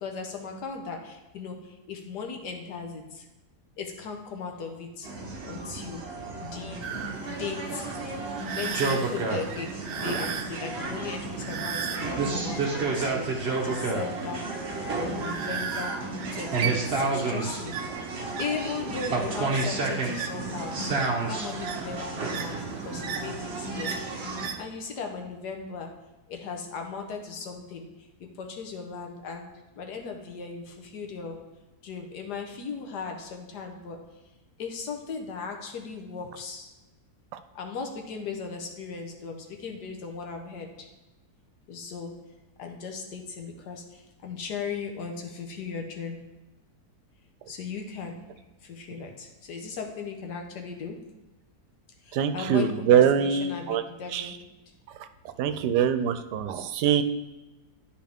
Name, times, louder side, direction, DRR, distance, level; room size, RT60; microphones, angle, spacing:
voice 1, 0.0-3.3 3.8-5.1 5.5-6.0 6.4-6.8 7.4-7.9 8.5-14.4 14.9-16.0 16.3-17.7 18.4-21.0 21.3-23.9 24.6-25.9 26.3-31.4 31.8-34.0 34.6-36.7 37.5-40.9 41.7-42.1 42.6-46.2 47.5-48.2 48.6-51.0 52.0-54.4, left 5 dB, 85° left, 3 dB, 1.5 m, -37 dB
sound 1, 5.0-24.5, right 3 dB, 45° right, 1.2 m, -31 dB
sound 2, 6.8-24.6, right 7 dB, 70° right, 0.6 m, -38 dB
voice 2, 52.1-53.8 54.1-54.3 55.4-57.0, right 8 dB, 90° right, 10 dB, 1.2 m, -23 dB
10.5 x 4.5 x 3.6 m, 1.1 s
omnidirectional pair, 1.7 m